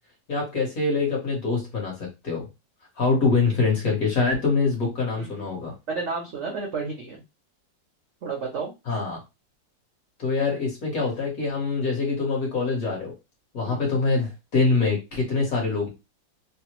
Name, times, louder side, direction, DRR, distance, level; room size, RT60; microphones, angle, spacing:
voice 1, 0.3-2.5 3.0-5.7 8.9-9.2 10.2-13.1 13.5-15.9, left 4 dB, 55° left, -1 dB, 1.4 m, -24 dB
voice 2, 5.9-7.2 8.2-8.7 13.7-13.8, right 4 dB, 60° right, 0 dB, 0.7 m, -31 dB
3.4 x 2.0 x 3.0 m, 0.25 s
omnidirectional pair, 2.0 m